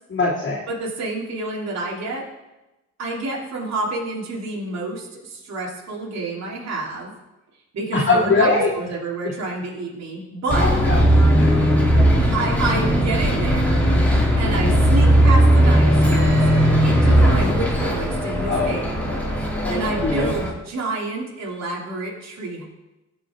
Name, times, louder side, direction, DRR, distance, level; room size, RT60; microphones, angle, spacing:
voice 1, 0.1-0.6 7.9-8.7 10.6-11.0 11.3-11.7 14.4-14.8 18.5-18.8 19.6-20.3, left 3 dB, 40° left, -7 dB, 2.7 m, -22 dB
voice 2, 0.7-2.2 3.0-7.1 7.7-10.7 12.3-13.8 14.4-16.4 16.8-19.1 19.7-22.6, right 2 dB, 60° right, -3 dB, 3.1 m, -28 dB
Bus, 10.5-20.5, equal, 5° left, 3.1 m, -17 dB
17.0 x 6.3 x 3.7 m, 1.0 s
cardioid pair, 90°, 30 cm